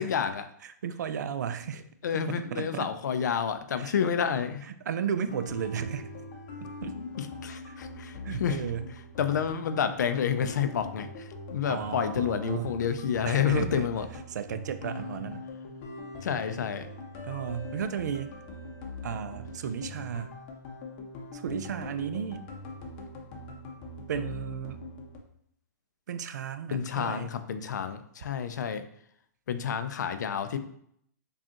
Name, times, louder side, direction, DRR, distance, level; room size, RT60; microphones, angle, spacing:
voice 1, 0.0-0.4 2.0-4.6 7.0-8.6 9.2-14.1 16.2-16.9 26.7-28.8 29.5-30.6, left 7 dB, 75° left, 9 dB, 0.4 m, -29 dB
voice 2, 0.6-1.8 2.3-2.9 3.8-3.9 4.7-6.1 6.6-6.9 7.7-7.8 8.2-8.8 11.7-12.7 13.3-13.9 14.3-15.4 17.3-18.3 19.0-20.3 21.3-22.4 24.1-24.8 26.1-27.3, right 8 dB, 75° right, 11 dB, 0.4 m, -34 dB
sound 1, 5.3-25.2, left 2 dB, 35° left, 0.6 m, -42 dB
4.9 x 2.4 x 2.8 m, 0.68 s
hypercardioid pair, 150°, 10 cm